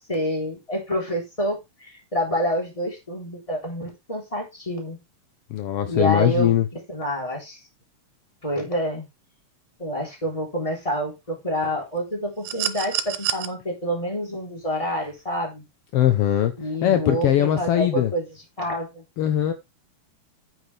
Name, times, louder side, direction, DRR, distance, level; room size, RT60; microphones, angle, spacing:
voice 1, 0.1-5.0 5.8-7.6 8.4-9.1 9.8-15.6 16.6-18.2 18.6-19.0, equal, 10° left, 3.4 m, -28 dB
voice 2, 5.5-6.6 15.9-16.5 16.8-18.1 19.2-19.5, left 11 dB, 75° left, 1.3 m, -20 dB
alien signal, 12.4-13.5 15.0-15.1, right 12 dB, 85° right, 2.5 m, -27 dB
9.4 x 7.9 x 3.3 m
omnidirectional pair, 3.7 m